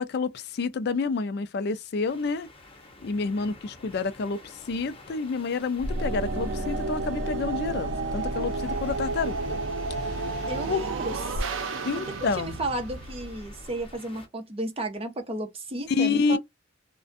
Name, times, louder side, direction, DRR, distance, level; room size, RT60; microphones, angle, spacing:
voice 1, 0.0-2.5 3.0-9.6 10.1-10.3 10.7-10.8 11.8-12.6 15.9-16.4, left 4 dB, 55° left, 0.4 m, -29 dB
sound 1, 2.0-14.3, left 2 dB, 30° left, 0.9 m, -51 dB
sound 2, 5.8-13.9, right 2 dB, 85° right, 0.6 m, -31 dB
voice 2, 10.5-11.4 12.3-16.4, right 2 dB, 30° right, 0.7 m, -33 dB
2.5 x 2.1 x 2.5 m
head